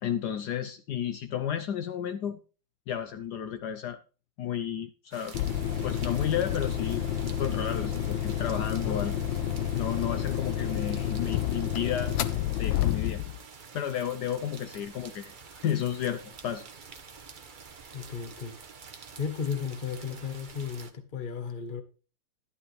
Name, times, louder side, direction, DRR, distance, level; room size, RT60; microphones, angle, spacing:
voice 1, 0.0-2.4 2.9-4.0 4.4-5.3 5.8-7.0 7.4-9.1 9.8-12.1 12.6-13.2 13.7-15.3 15.6-16.6, left 9 dB, 70° left, 1.1 m, -32 dB
sound 1, 5.1-20.9, right 5 dB, 45° right, 0.6 m, -48 dB
sound 2, 5.3-13.4, left 10 dB, 85° left, 1.4 m, -30 dB
voice 2, 8.8-9.2 17.9-18.6 19.2-21.8, left 6 dB, 35° left, 1.0 m, -34 dB
11.5 x 11.0 x 3.2 m
omnidirectional pair, 2.0 m